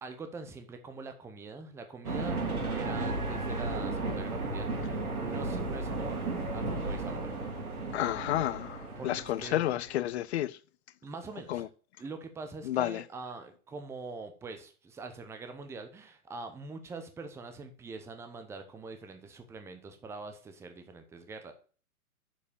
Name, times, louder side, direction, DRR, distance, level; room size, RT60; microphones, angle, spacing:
voice 1, 0.0-7.4 9.0-9.6 11.0-11.7 12.0-21.5, right 3 dB, 5° right, 0.7 m, -44 dB
sound 1, 2.0-10.1, right 2 dB, 75° right, 3.8 m, -34 dB
voice 2, 7.9-10.6 11.5-11.7 12.6-13.0, left 13 dB, 50° left, 0.6 m, -31 dB
7.1 x 5.1 x 6.8 m
hypercardioid pair, 120°, 44 cm